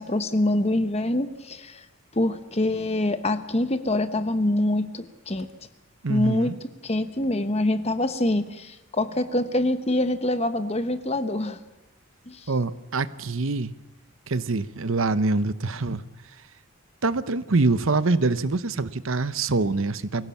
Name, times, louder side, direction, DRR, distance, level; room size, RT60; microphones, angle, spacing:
voice 1, 0.0-1.8 2.1-5.5 6.1-11.6 12.3-12.5, left 1 dB, 30° left, 11 dB, 1.1 m, -25 dB
voice 2, 6.0-6.6 12.5-13.7 14.3-16.0 17.0-20.3, right 3 dB, 65° right, 15 dB, 0.9 m, -25 dB
24.0 x 16.5 x 7.2 m, 1.1 s
head